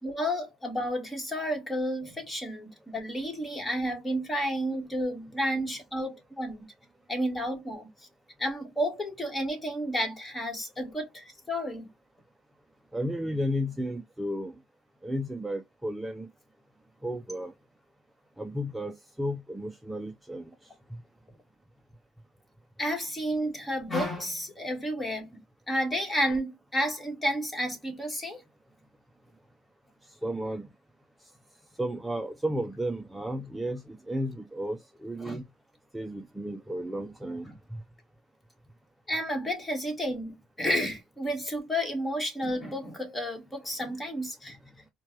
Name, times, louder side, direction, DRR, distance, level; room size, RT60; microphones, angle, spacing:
voice 1, 0.0-6.7 7.1-7.9 8.4-11.9 22.8-25.4 25.7-28.4 35.2-35.4 37.4-37.5 39.1-44.6, equal, 15° left, 1.7 m, -31 dB
voice 2, 12.9-14.5 15.0-16.3 17.0-17.5 18.4-20.5 30.2-30.7 31.8-35.4 35.9-37.5, equal, 5° right, 0.5 m, -33 dB
4.3 x 2.3 x 3.1 m
cardioid pair, 105°, 0 cm